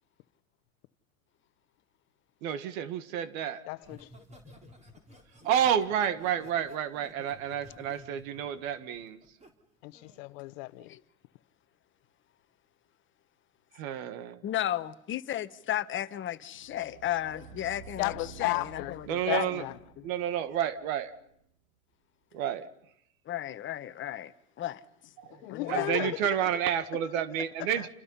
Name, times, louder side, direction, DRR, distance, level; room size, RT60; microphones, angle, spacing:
voice 1, 2.4-3.6 5.4-9.2 13.7-14.4 19.1-19.6 20.0-21.1 22.3-22.7 25.2-27.9, right 9 dB, 65° right, 1.9 m, -30 dB
voice 2, 3.7-4.1 9.8-10.9 18.0-18.9 19.3-19.7 25.3-26.2 27.8-27.9, left 21 dB, 55° left, 1.1 m, -34 dB
Laughter, 3.8-9.5 9.9-10.2, equal, 15° right, 3.8 m, -54 dB
voice 3, 14.4-19.7 23.3-24.3 24.6-24.8 25.5-25.9, left 12 dB, 25° left, 1.2 m, -34 dB
sound 1, 16.5-21.5, right 7 dB, 85° right, 1.8 m, -51 dB
29.0 x 28.0 x 5.7 m
supercardioid pair, 130°, 44 cm